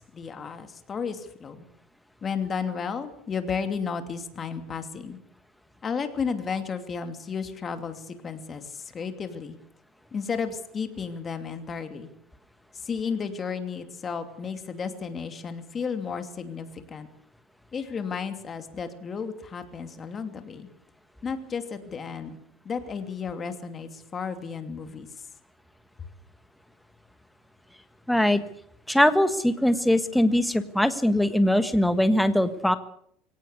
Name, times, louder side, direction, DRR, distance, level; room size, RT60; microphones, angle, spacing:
voice 1, 0.0-1.7 2.2-5.2 5.8-9.6 10.1-12.1 12.7-17.1 17.7-20.7 21.2-22.4 22.6-25.3, left 6 dB, 25° left, 8 dB, 2.8 m, -33 dB
voice 2, 28.1-28.4 28.9-32.7, left 1 dB, ahead, 10 dB, 1.6 m, -21 dB
23.0 x 18.0 x 8.3 m, 0.68 s
cardioid pair, 145°, 0 cm